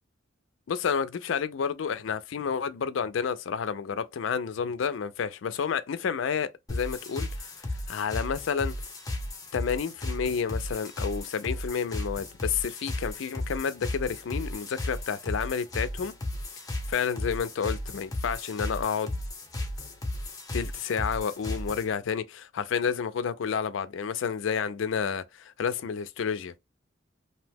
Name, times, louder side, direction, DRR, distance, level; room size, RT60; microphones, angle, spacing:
voice 1, 0.7-7.5 7.9-8.7 9.5-16.1 16.9-19.2 20.5-26.5, left 6 dB, 70° left, 0.4 m, -30 dB
sound 1, 6.7-21.9, left 1 dB, 20° left, 0.6 m, -35 dB
2.7 x 2.1 x 3.3 m
head